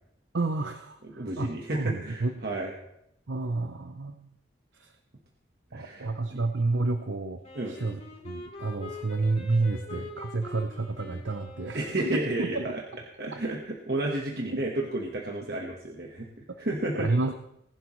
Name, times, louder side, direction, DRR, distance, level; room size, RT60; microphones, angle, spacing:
voice 1, 0.3-2.4 3.3-4.3 4.7-4.9 5.7-7.4 7.7-11.9 12.4-12.8 14.4-14.6 16.5-16.6 17.0-17.3, right 3 dB, 85° right, 7 dB, 0.8 m, -30 dB
voice 2, 1.0-2.7 5.7-6.4 7.5-7.7 11.7-12.8 13.2-17.1, right 1 dB, 55° right, -1 dB, 1.4 m, -32 dB
Wind instrument woodwind instrument, 7.4-12.5, left 2 dB, 35° left, 3.2 m, -44 dB
19.5 x 11.5 x 3.2 m, 0.77 s
head